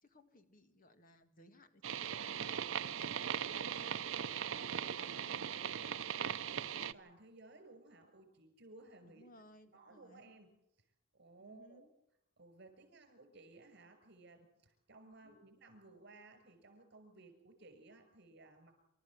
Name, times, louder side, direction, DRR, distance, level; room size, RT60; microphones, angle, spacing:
voice 1, 0.0-2.6 3.5-6.2 9.1-10.3 11.4-11.9 15.0-15.4, left 1 dB, 45° left, 9 dB, 2.0 m, -62 dB
sound 1, 1.8-6.9, right 8 dB, 75° right, 0.7 m, -39 dB
voice 2, 3.4-4.0 4.5-5.2 6.3-9.2 9.7-10.5 11.1-11.9 12.4-18.8, right 2 dB, 55° right, 7 dB, 6.4 m, -58 dB
27.5 x 13.5 x 7.8 m, 0.84 s
head